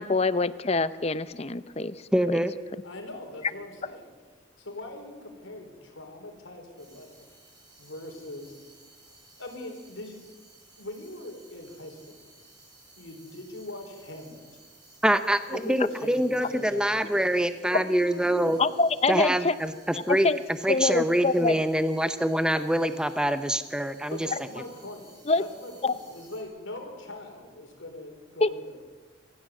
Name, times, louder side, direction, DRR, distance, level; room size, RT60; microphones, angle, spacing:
voice 1, 0.0-2.0 15.8-15.9 17.7-17.8 18.6-19.5 20.1-20.4 20.7-21.5 25.3-25.4 25.8-25.9 28.4-28.5, left 3 dB, 30° left, 15 dB, 0.6 m, -25 dB
voice 2, 2.1-2.5 15.0-18.6 19.1-20.3 20.6-24.3, right 1 dB, 5° right, 10 dB, 0.7 m, -25 dB
voice 3, 2.8-4.1 4.6-7.3 7.8-8.5 9.4-10.2 10.8-12.3 13.0-14.5 15.5-17.3 17.6-18.7 24.1-28.7, left 1 dB, 80° left, 3 dB, 4.3 m, -41 dB
sound 1, 6.8-26.4, right 2 dB, 20° right, 5.9 m, -56 dB
26.5 x 15.0 x 7.7 m, 1.4 s
head